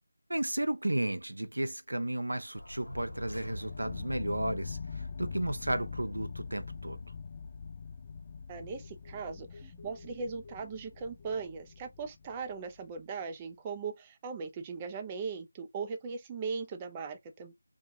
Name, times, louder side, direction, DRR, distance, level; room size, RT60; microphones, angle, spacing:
voice 1, 0.3-7.0, right 1 dB, 85° right, 0.6 m, -33 dB
sound 1, 2.6-4.2, equal, 90° left, 0.9 m, -45 dB
sound 2, 2.9-12.7, left 5 dB, 35° left, 0.4 m, -43 dB
sound 3, 8.1-12.1, left 2 dB, ahead, 1.0 m, -57 dB
voice 2, 8.5-17.5, right 5 dB, 20° right, 0.6 m, -39 dB
4.5 x 2.3 x 2.8 m
figure-of-eight pair, 165°, 0 cm